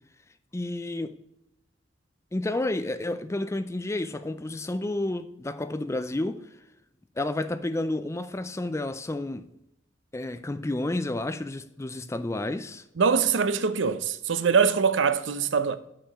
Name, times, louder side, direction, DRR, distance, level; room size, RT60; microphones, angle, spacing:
voice 1, 0.5-1.2 2.3-6.5 7.2-9.5 10.1-12.8, left 2 dB, 15° left, 0.4 m, -30 dB
voice 2, 13.0-15.8, right 6 dB, 75° right, 0.6 m, -23 dB
6.5 x 6.3 x 4.8 m
head